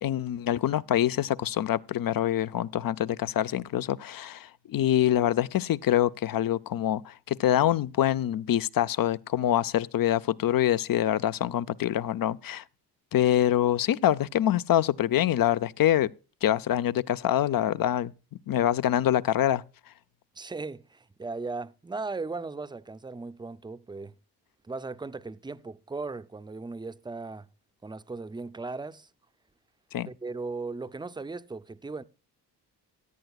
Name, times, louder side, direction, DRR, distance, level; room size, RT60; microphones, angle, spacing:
voice 1, 0.0-12.6 13.1-16.1 16.4-18.1 18.5-19.6 29.9-30.1, left 11 dB, 60° left, 0.6 m, -25 dB
voice 2, 20.3-24.1 24.6-27.5 27.8-29.1 30.1-32.0, right 3 dB, 10° right, 0.5 m, -37 dB
17.0 x 11.0 x 2.3 m
cardioid pair, 85°, 40 cm